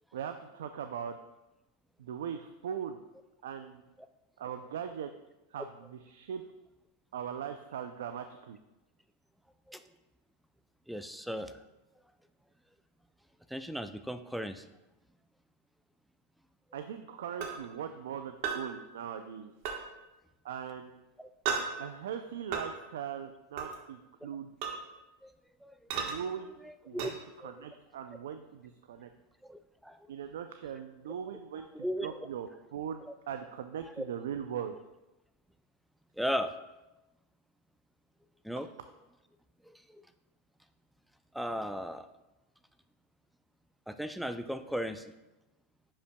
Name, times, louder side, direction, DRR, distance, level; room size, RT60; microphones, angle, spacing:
voice 1, 0.1-1.2 2.0-3.0 3.4-3.8 4.4-5.1 5.5-6.4 7.1-8.6 16.7-19.5 20.4-20.9 21.8-24.5 26.0-26.5 26.9-27.1 27.4-29.1 30.1-31.7 32.0-34.8, right 8 dB, 85° right, 8 dB, 0.4 m, -40 dB
voice 2, 10.9-11.6 13.5-14.6 21.2-21.3 25.2-25.3 25.6-25.8 26.6-27.1 27.4-27.5 29.4-30.0 31.6-32.2 34.0-34.1 36.2-36.5 38.4-38.7 39.6-40.0 41.3-42.1 43.9-45.1, equal, ahead, 10 dB, 0.4 m, -36 dB
sound 1, 17.4-17.5 18.4-18.6 19.6-19.8 21.4-21.7 22.5-22.6 23.6-23.8 24.6-24.8 25.9-26.1 27.0-27.1, right 6 dB, 55° right, 1.2 m, -32 dB
9.8 x 5.5 x 2.2 m, 1.0 s
supercardioid pair, 130°, 0 cm